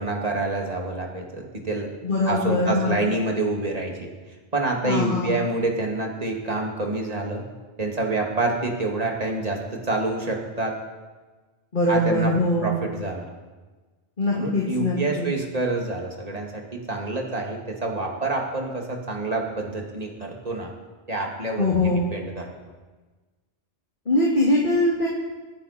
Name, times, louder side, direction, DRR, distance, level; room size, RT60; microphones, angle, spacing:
voice 1, 0.0-1.9 2.2-4.1 4.5-7.4 7.8-10.8 11.9-12.3 12.6-13.3 14.3-20.7 21.1-22.5, right 2 dB, 35° right, 0 dB, 2.4 m, -27 dB
voice 2, 2.0-3.0 4.8-5.3 11.7-12.7 14.2-15.3 21.6-22.1 24.1-25.1, left 1 dB, 45° left, -4 dB, 2.6 m, -22 dB
27.0 x 10.0 x 4.4 m, 1.3 s
omnidirectional pair, 1.2 m